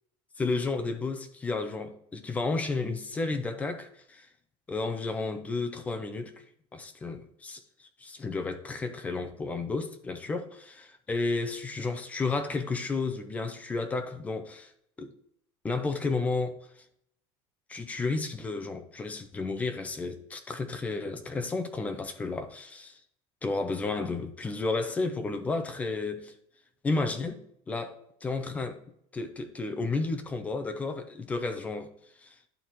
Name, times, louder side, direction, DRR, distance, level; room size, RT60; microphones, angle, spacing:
voice 1, 0.4-4.3 4.7-6.3 6.7-14.7 15.0-15.1 15.6-16.7 17.7-23.0 23.4-26.3 26.8-28.8 29.1-31.9 32.2-32.3, left 3 dB, 10° left, 0.5 m, -32 dB
11.0 x 4.3 x 3.0 m
cardioid pair, 175°, 13 cm